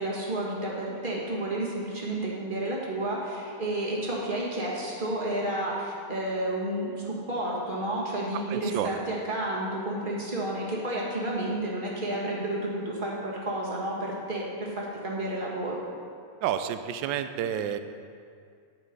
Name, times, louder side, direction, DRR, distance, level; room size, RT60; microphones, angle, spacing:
voice 1, 0.0-15.7, right 1 dB, 25° right, -4 dB, 1.7 m, -31 dB
voice 2, 8.3-9.0 16.4-17.8, right 10 dB, 75° right, 10 dB, 1.2 m, -30 dB
9.7 x 7.8 x 5.3 m, 2.3 s
omnidirectional pair, 2.4 m